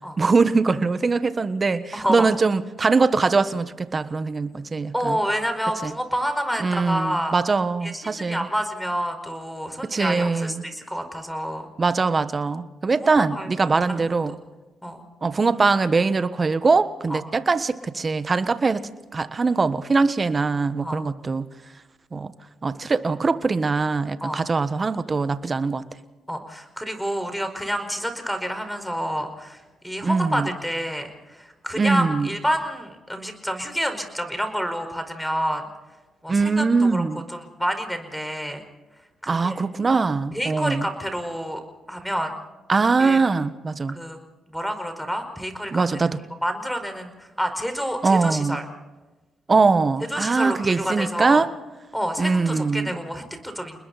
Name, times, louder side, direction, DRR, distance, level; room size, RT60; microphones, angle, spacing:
voice 1, 0.2-5.2 5.8-5.9 6.6-8.5 9.8-10.6 11.8-14.3 15.2-18.8 19.1-21.5 22.1-22.3 22.6-25.8 30.0-30.5 31.7-32.3 36.3-37.2 39.3-40.8 42.7-43.9 45.7-46.2 48.0-48.6 49.5-51.5 52.2-53.0, right 4 dB, 40° right, 12 dB, 1.4 m, -22 dB
voice 2, 1.9-2.3 4.9-7.3 7.8-11.7 13.2-14.1 14.8-15.0 17.1-17.2 20.8-21.1 24.2-24.4 26.3-35.7 36.2-37.0 37.3-38.6 39.2-39.6 40.3-41.6 41.9-42.3 43.0-43.2 43.9-44.2 44.5-45.8 46.4-48.6 49.5-49.6 50.1-51.4 51.9-53.8, equal, 5° left, 7 dB, 4.9 m, -28 dB
29.5 x 20.5 x 4.2 m, 1.1 s
supercardioid pair, 55°, 0 cm